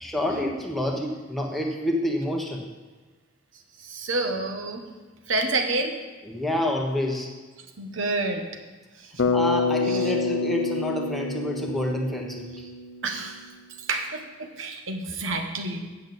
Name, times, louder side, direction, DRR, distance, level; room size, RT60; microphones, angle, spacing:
voice 1, 0.0-2.7 6.2-7.3 9.3-12.6, left 1 dB, ahead, -1 dB, 1.3 m, -28 dB
voice 2, 3.8-4.9 5.3-6.0 7.8-8.6 8.9-9.3 9.8-10.1 13.0-13.5 13.8-15.9, right 2 dB, 70° right, 4 dB, 1.3 m, -29 dB
Bass guitar, 9.2-13.3, left 4 dB, 70° left, 0.8 m, -27 dB
8.8 x 5.5 x 7.9 m, 1.3 s
head